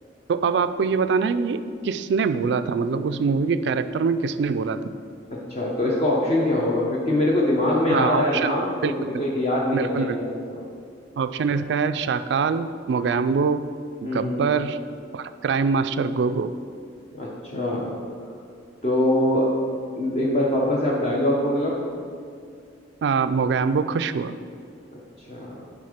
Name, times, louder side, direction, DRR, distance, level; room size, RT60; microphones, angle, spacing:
voice 1, 0.3-4.8 7.9-8.5 8.8-8.9 9.7-10.2 11.2-13.7 14.0-14.8 15.1-16.5 23.0-24.3, right 5 dB, 70° right, 12 dB, 0.3 m, -23 dB
voice 2, 5.3-10.6 14.0-14.5 17.1-17.9 18.8-19.5 20.0-21.8 25.2-25.5, left 1 dB, 40° left, -4 dB, 0.9 m, -23 dB
9.8 x 3.7 x 5.0 m, 2.3 s
head